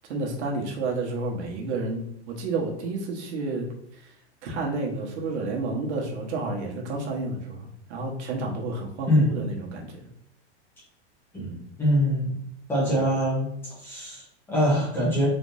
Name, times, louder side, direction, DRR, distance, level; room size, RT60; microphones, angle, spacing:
voice 1, 0.1-3.7 4.0-4.1 4.4-10.0 11.3-11.6 12.9-13.0, right 3 dB, 75° right, -1 dB, 1.4 m, -31 dB
voice 2, 11.8-12.3 12.7-13.5 13.8-15.3, equal, 5° left, -7 dB, 0.9 m, -23 dB
4.3 x 3.6 x 2.6 m, 0.76 s
supercardioid pair, 180°, 34 cm